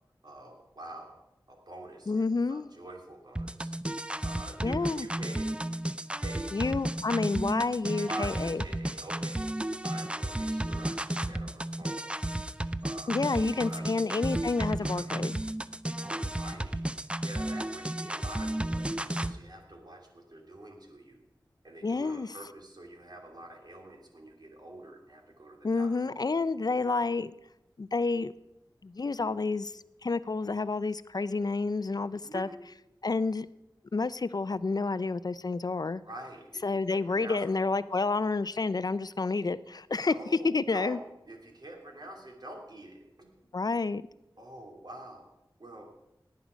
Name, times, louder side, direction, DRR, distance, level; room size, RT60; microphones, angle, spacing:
voice 1, 0.2-1.2 1.5-3.7 4.2-5.5 6.2-6.5 8.0-9.4 9.8-12.0 12.8-13.9 14.8-15.1 16.0-16.8 17.2-21.2 21.6-26.1 32.2-32.5 36.0-37.6 40.1-43.3 44.4-45.3 45.6-45.9, right 1 dB, 60° right, 1 dB, 2.7 m, -46 dB
voice 2, 2.1-2.7 4.6-5.1 6.5-8.6 13.1-15.4 21.8-22.4 25.6-27.3 27.8-28.3 28.8-32.5 33.0-33.5 33.9-36.0 36.6-40.1 40.4-41.0 43.5-44.0, left 3 dB, 55° left, 16 dB, 0.4 m, -29 dB
sound 1, 3.4-19.3, right 1 dB, 15° right, 0.5 m, -33 dB
17.5 x 9.5 x 5.1 m, 0.91 s
wide cardioid pair, 60°, 8 cm